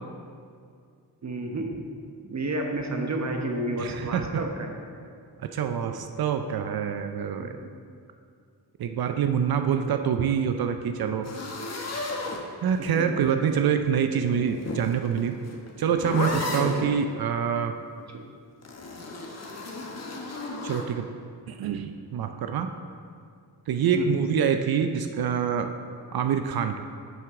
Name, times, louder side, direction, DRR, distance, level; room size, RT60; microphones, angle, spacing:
voice 1, 1.2-1.7 2.3-4.7 7.4-7.7 12.9-13.6 16.5-16.8 23.9-24.2, right 2 dB, 40° right, 3 dB, 1.1 m, -31 dB
voice 2, 3.8-4.4 5.5-7.5 8.8-11.3 12.6-15.3 15.8-17.7 20.6-21.0 21.5-22.7 23.7-25.7 26.1-26.8, right 7 dB, 60° right, 7 dB, 0.5 m, -26 dB
sound 1, 11.2-13.0 14.2-16.9 18.6-20.9, left 2 dB, 40° left, 1.1 m, -33 dB
10.5 x 4.6 x 3.7 m, 2.3 s
cardioid pair, 60°, 42 cm